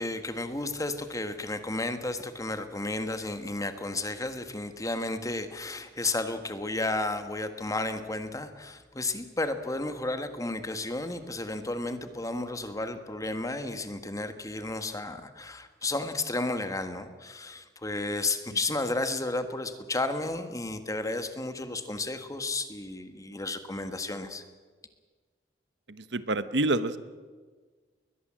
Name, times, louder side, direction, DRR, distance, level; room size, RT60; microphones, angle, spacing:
voice 1, 0.0-24.4, left 2 dB, 20° left, 8 dB, 1.6 m, -32 dB
voice 2, 25.9-27.0, right 2 dB, 80° right, 13 dB, 1.1 m, -27 dB
21.5 x 20.5 x 7.6 m, 1.4 s
head